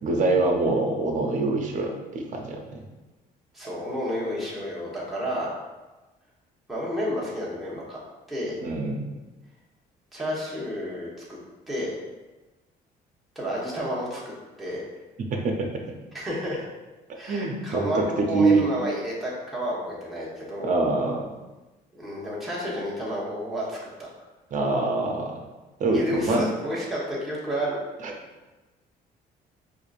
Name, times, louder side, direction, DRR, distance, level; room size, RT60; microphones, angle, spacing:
voice 1, 0.0-2.8 8.6-9.1 15.3-15.7 17.3-18.6 20.6-21.3 24.5-25.4 25.8-26.4 28.0-28.1, right 3 dB, 50° right, 2 dB, 0.7 m, -24 dB
voice 2, 3.5-5.5 6.7-8.0 8.3-8.6 10.1-11.4 11.7-12.0 13.3-14.2 14.6-14.8 16.1-16.6 17.2-20.8 21.9-24.1 25.9-27.8, equal, ahead, -7 dB, 1.2 m, -31 dB
4.6 x 2.6 x 2.4 m, 1.1 s
cardioid pair, 110°, 17 cm